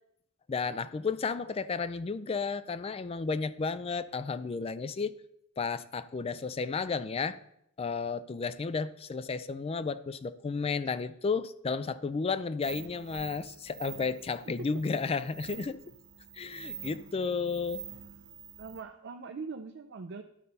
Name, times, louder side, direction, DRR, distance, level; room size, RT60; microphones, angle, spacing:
voice 1, 0.5-5.1 5.6-7.4 7.8-15.8 16.3-17.8, left 4 dB, 30° left, 14 dB, 0.3 m, -33 dB
sound 1, 12.6-18.8, right 9 dB, 90° right, 1.5 m, -47 dB
voice 2, 18.6-20.2, right 4 dB, 55° right, 6 dB, 0.5 m, -42 dB
11.5 x 4.0 x 5.4 m, 0.76 s
head